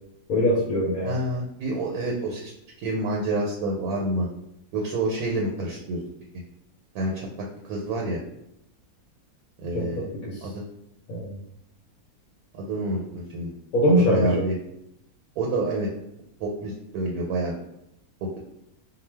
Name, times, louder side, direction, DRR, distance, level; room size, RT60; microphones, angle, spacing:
voice 1, 0.3-1.2 9.7-10.5 11.1-11.4 13.7-14.5, equal, 75° left, -4 dB, 1.1 m, -23 dB
voice 2, 1.0-2.5 2.8-4.3 4.7-6.0 6.9-7.3 7.7-8.2 9.6-10.1 10.4-10.6 12.5-13.5 14.0-14.5 15.4-15.9 16.4-17.6 18.2-18.4, right 2 dB, 85° right, -1 dB, 1.1 m, -28 dB
2.4 x 2.2 x 3.2 m, 0.81 s
omnidirectional pair, 1.5 m